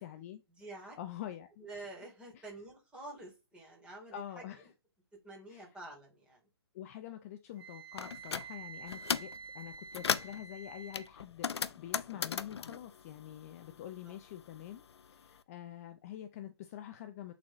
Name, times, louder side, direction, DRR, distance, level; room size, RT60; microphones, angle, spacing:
voice 1, 0.0-0.4 1.0-1.7 2.3-2.5 4.1-4.7 5.5-5.7 6.7-17.3, left 11 dB, 35° left, 0.6 m, -46 dB
voice 2, 0.6-1.0 1.6-4.5 5.2-6.4 13.7-13.8 14.0-14.1, right 2 dB, 10° right, 3.4 m, -48 dB
Wind instrument woodwind instrument, 7.6-11.1, right 5 dB, 70° right, 1.0 m, -49 dB
sound 1, 8.0-8.5 8.9-9.4 9.7-10.4 10.9-13.9 14.1-15.3, left 6 dB, 80° left, 0.5 m, -36 dB
8.4 x 4.2 x 3.1 m
hypercardioid pair, 140°, 14 cm